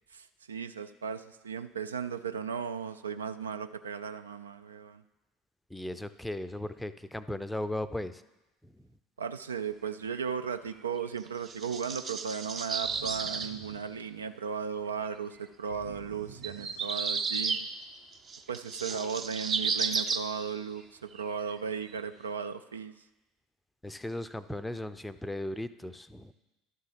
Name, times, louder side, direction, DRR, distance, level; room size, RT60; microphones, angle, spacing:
voice 1, 0.1-5.0 9.2-17.7 18.5-22.9, right 6 dB, 85° right, 10 dB, 0.3 m, -36 dB
voice 2, 5.7-8.2 8.6-8.7 23.8-26.3, left 1 dB, 5° left, 12 dB, 0.5 m, -37 dB
sound 1, 11.0-13.5 15.1-15.2 16.4-17.7 18.1-20.3 21.1-21.3 21.7-22.0, right 5 dB, 35° right, 0.6 m, -33 dB
sound 2, 12.8-14.6 15.7-17.4, right 7 dB, 65° right, 0.9 m, -50 dB
11.0 x 3.8 x 7.4 m, 1.0 s
hypercardioid pair, 70°, 0 cm